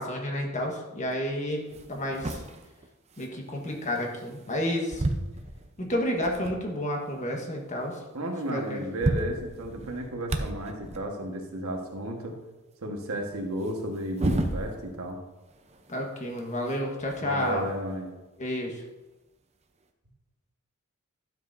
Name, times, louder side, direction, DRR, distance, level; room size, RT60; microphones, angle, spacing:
voice 1, 0.0-2.4 3.2-5.0 5.8-8.0 8.5-8.8 15.9-17.6 18.4-18.8, left 1 dB, 35° left, 1 dB, 1.4 m, -30 dB
sound 1, 1.1-1.2 1.6-4.6 4.9-6.7 7.2-7.3 7.5-7.6 8.5-8.6 8.8-11.1 13.6-15.1 15.4-17.7 18.7-18.8 19.8-19.9, right 1 dB, 30° right, 0.7 m, -34 dB
voice 2, 8.1-12.4 12.8-15.2 17.2-18.1, right 1 dB, 70° right, 1 dB, 1.4 m, -33 dB
12.0 x 7.6 x 2.7 m, 1.1 s
head